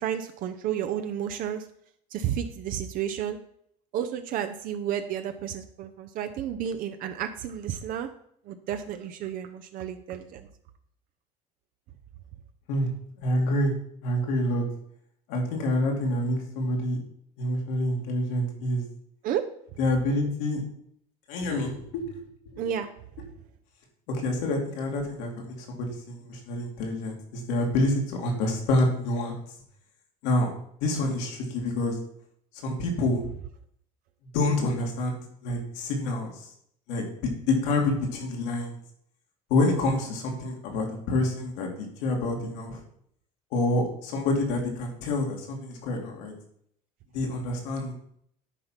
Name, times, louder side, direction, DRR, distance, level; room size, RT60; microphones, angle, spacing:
voice 1, 0.0-1.7 2.1-3.4 3.9-8.1 8.5-10.5 19.2-19.4 22.6-22.9, right 9 dB, 60° right, 8 dB, 0.7 m, -31 dB
voice 2, 13.2-13.7 14.0-14.6 15.3-17.0 17.4-18.8 19.8-20.6 21.3-22.3 22.5-22.6 24.1-29.3 30.2-30.5 30.8-32.0 32.6-33.2 34.3-36.5 36.9-37.0 37.5-38.8 39.5-41.7 42.0-42.8 43.5-46.3 47.1-47.9, left 1 dB, 90° left, 1 dB, 2.6 m, -27 dB
10.0 x 4.5 x 5.8 m, 0.67 s
cardioid pair, 115°, 16 cm